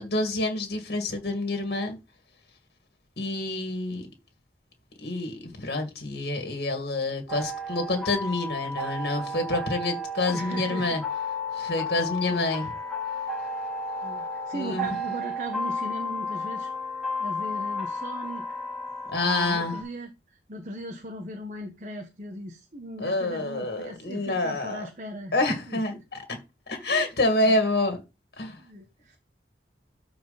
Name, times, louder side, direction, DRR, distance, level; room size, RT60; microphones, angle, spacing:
voice 1, 0.0-2.0 3.2-4.1 5.0-11.0 11.5-12.7 14.5-14.9 19.1-19.8 23.0-24.9 25.3-26.2 26.7-28.0 28.4-28.6, left 2 dB, 65° left, 2.0 m, -27 dB
sound 1, 7.3-19.8, left 2 dB, ahead, 3.5 m, -33 dB
voice 2, 10.3-11.0 12.3-12.5 14.0-18.6 19.2-26.0 26.3-26.4 26.7-26.9 27.4-27.6 28.6-29.2, right 1 dB, 45° right, 1.3 m, -38 dB
13.0 x 4.6 x 4.1 m
head